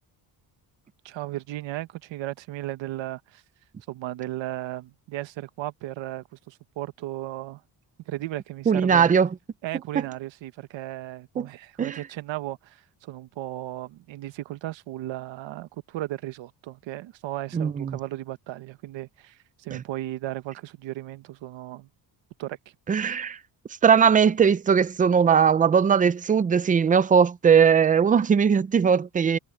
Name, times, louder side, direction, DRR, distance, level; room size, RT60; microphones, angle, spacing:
voice 1, 1.0-3.4 3.9-7.6 8.1-9.1 9.6-21.9 22.4-22.6, right 15 dB, 85° right, 1.1 m, -35 dB
voice 2, 8.7-9.3 10.0-10.1 11.4-11.5 11.8-12.0 17.5-18.0 19.7-19.8 22.9-23.4 23.8-29.4, right 7 dB, 20° right, 0.4 m, -19 dB
cardioid pair, 180°, 44 cm